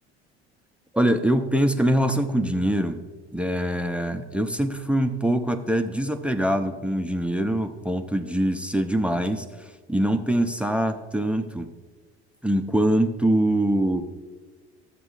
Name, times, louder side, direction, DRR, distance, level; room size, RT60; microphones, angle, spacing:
voice 1, 0.9-3.0 3.3-9.4 9.9-11.7 12.4-14.0, right 1 dB, 5° right, 7 dB, 0.6 m, -23 dB
13.5 x 8.2 x 2.5 m, 1.4 s
hypercardioid pair, 65°, 32 cm